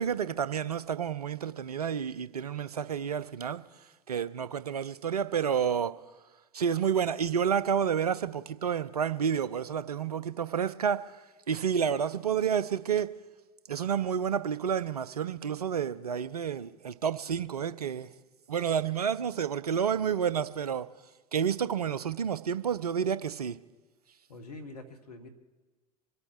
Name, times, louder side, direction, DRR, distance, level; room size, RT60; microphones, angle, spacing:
voice 1, 0.0-3.6 4.1-5.9 6.5-11.1 11.5-13.1 13.7-18.1 18.5-20.9 21.3-23.6, right 7 dB, 85° right, 0.6 m, -30 dB
voice 2, 24.3-25.3, left 2 dB, 80° left, 1.7 m, -45 dB
25.0 x 8.6 x 4.6 m
figure-of-eight pair, 80°, 19 cm